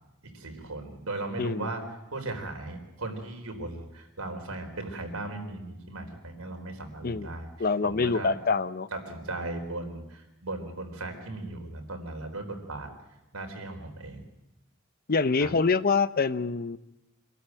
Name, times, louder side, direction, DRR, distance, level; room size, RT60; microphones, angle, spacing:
voice 1, 0.3-7.5 7.8-8.3 8.9-12.9 13.3-14.2 15.4-15.5, right 2 dB, 90° right, 4 dB, 4.0 m, -37 dB
voice 2, 1.4-1.7 7.0-7.3 7.6-8.9 15.1-16.8, left 4 dB, 45° left, 14 dB, 0.7 m, -25 dB
25.5 x 13.0 x 9.0 m, 0.96 s
head